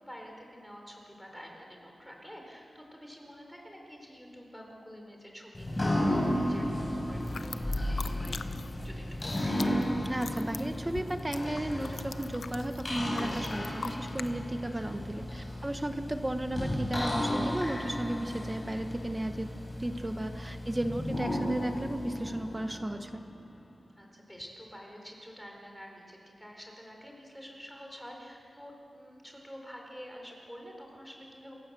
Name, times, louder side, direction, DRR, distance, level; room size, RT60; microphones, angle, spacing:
voice 1, 0.0-8.4 8.8-9.6 14.7-15.1 24.0-31.6, equal, 5° left, 1 dB, 4.6 m, -48 dB
sound 1, 5.5-23.4, left 1 dB, 25° left, 5.0 m, -34 dB
sound 2, 7.2-8.9 9.1-14.3, left 5 dB, 70° left, 0.7 m, -43 dB
voice 2, 10.1-19.5 19.8-23.2, right 1 dB, 15° right, 7 dB, 1.1 m, -34 dB
28.0 x 15.5 x 7.7 m, 2.5 s
wide cardioid pair, 110°, 0 cm